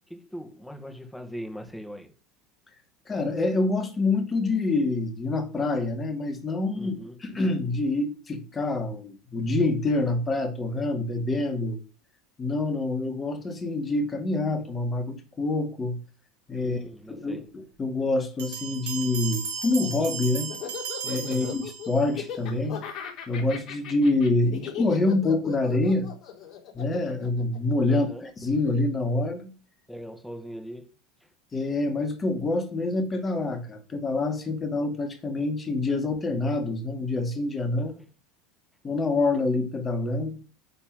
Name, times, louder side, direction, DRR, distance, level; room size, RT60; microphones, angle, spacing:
voice 1, 0.1-2.1 6.7-7.2 16.6-17.5 21.3-21.6 27.9-28.3 29.9-30.9 31.2-31.3 37.8-38.1, equal, 5° left, 2.2 m, -40 dB
voice 2, 3.1-6.9 7.2-11.8 12.4-16.0 16.5-16.8 17.1-20.5 21.0-22.8 23.3-26.1 26.7-28.1 28.4-29.5 31.5-37.9 38.8-40.4, left 2 dB, 25° left, 2.7 m, -26 dB
Bell, 18.4-22.2, right 7 dB, 80° right, 2.8 m, -35 dB
Laughter, 19.7-28.1, left 9 dB, 50° left, 3.8 m, -38 dB
10.0 x 4.4 x 7.7 m
hypercardioid pair, 90°, 0 cm